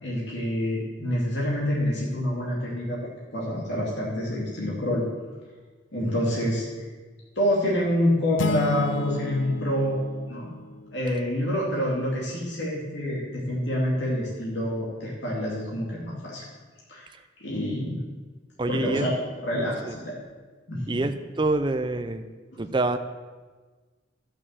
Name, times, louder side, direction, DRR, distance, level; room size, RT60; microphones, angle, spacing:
voice 1, 0.0-3.0 3.3-5.0 5.9-6.6 7.4-10.0 10.3-10.5 10.9-16.4 16.9-17.0 17.4-18.0 18.7-19.1 19.4-20.2 20.7-21.0 22.5-22.6, equal, 65° left, -5 dB, 2.5 m, -27 dB
sound 1, 8.4-11.2, left 3 dB, 90° left, 0.7 m, -31 dB
voice 2, 18.6-19.1 19.9-20.0 20.9-22.3 22.6-23.0, right 2 dB, 25° right, 8 dB, 0.5 m, -26 dB
12.5 x 6.5 x 7.5 m, 1.4 s
head